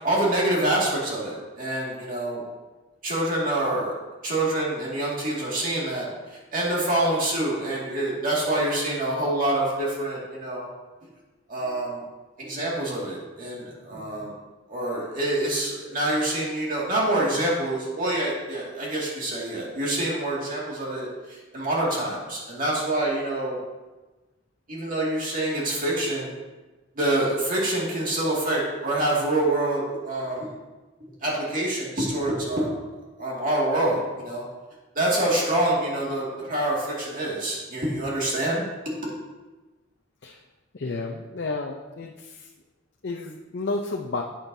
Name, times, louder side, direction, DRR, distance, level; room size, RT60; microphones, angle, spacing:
voice 1, 0.0-2.4 3.0-3.9 4.2-6.1 6.5-10.7 11.5-12.0 12.4-14.3 14.7-23.6 24.7-26.3 27.0-30.5 31.2-32.8 33.2-34.4 35.0-38.7 39.0-39.1, right 1 dB, 45° right, -4 dB, 2.2 m, -26 dB
voice 2, 40.7-42.5 43.0-44.2, left 3 dB, 65° left, 1 dB, 0.7 m, -31 dB
11.5 x 8.7 x 2.7 m, 1.2 s
head